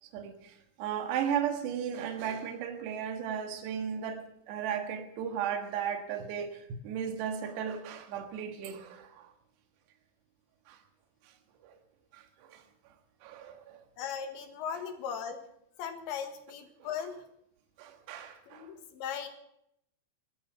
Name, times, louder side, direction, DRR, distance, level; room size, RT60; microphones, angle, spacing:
voice 1, 0.0-9.3 10.7-10.8 11.6-11.7 12.1-12.6 13.2-13.8 16.8-17.1 17.8-18.7, right 8 dB, 65° right, 3.5 m, -36 dB
voice 2, 14.0-15.4 15.8-17.2 18.5-19.3, left 7 dB, 70° left, 3.7 m, -38 dB
21.5 x 10.0 x 5.7 m
omnidirectional pair, 5.5 m